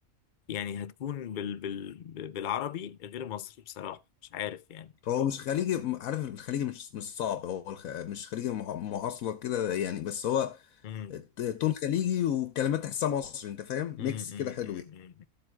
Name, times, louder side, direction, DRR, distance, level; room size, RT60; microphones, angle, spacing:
voice 1, 0.5-4.0 4.3-4.9 10.8-11.2 14.0-15.2, left 9 dB, 50° left, 0.6 m, -37 dB
voice 2, 5.0-10.8 11.1-14.8, left 10 dB, 90° left, 1.2 m, -31 dB
14.0 x 7.7 x 2.2 m
omnidirectional pair, 1.4 m